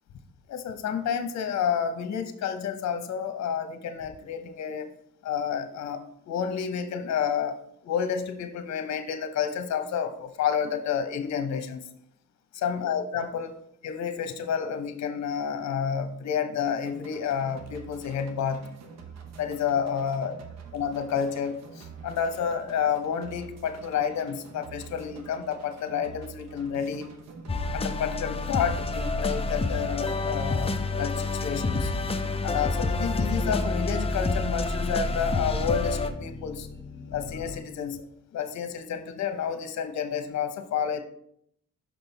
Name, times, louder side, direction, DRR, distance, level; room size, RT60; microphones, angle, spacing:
voice 1, 0.5-4.9 5.2-11.9 12.5-13.5 13.8-18.7 19.4-20.3 20.7-27.1 27.7-31.9 32.4-36.7 37.1-38.0 38.3-41.0, left 7 dB, 65° left, 8 dB, 0.9 m, -30 dB
sound 1, 16.9-32.4, right 5 dB, 60° right, 1.0 m, -46 dB
sound 2, 26.8-37.6, left 3 dB, 40° left, 1.7 m, -45 dB
sound 3, 27.5-36.1, left 3 dB, 20° left, 0.6 m, -28 dB
6.2 x 5.5 x 4.1 m, 0.71 s
cardioid pair, 90°, 30 cm